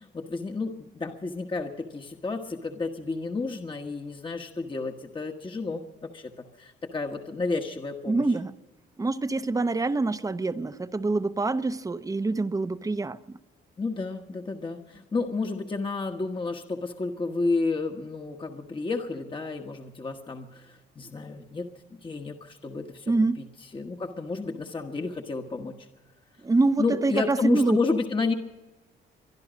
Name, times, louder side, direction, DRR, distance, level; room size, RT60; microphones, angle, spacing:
voice 1, 0.0-8.3 13.8-21.7 22.0-23.5 23.7-25.9 26.8-28.3, left 3 dB, 25° left, 3 dB, 1.2 m, -31 dB
voice 2, 8.1-8.5 9.0-13.4 23.1-23.4 26.4-27.8, right 3 dB, 15° right, 12 dB, 0.8 m, -25 dB
23.0 x 11.5 x 5.1 m, 1.1 s
cardioid pair, 90°, 20 cm